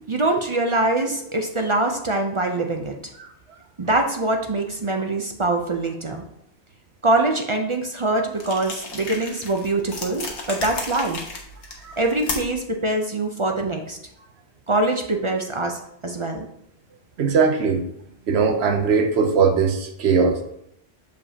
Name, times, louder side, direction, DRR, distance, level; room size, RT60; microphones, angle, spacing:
voice 1, 0.1-2.9 3.8-6.2 7.0-11.2 12.0-14.0 14.7-16.5, right 2 dB, 40° right, 3 dB, 0.4 m, -23 dB
sound 1, 8.4-12.7, left 3 dB, 85° left, 1.3 m, -34 dB
voice 2, 17.2-17.9 18.3-20.4, right 5 dB, 75° right, 5 dB, 1.0 m, -20 dB
6.9 x 5.1 x 2.8 m, 0.76 s
omnidirectional pair, 1.1 m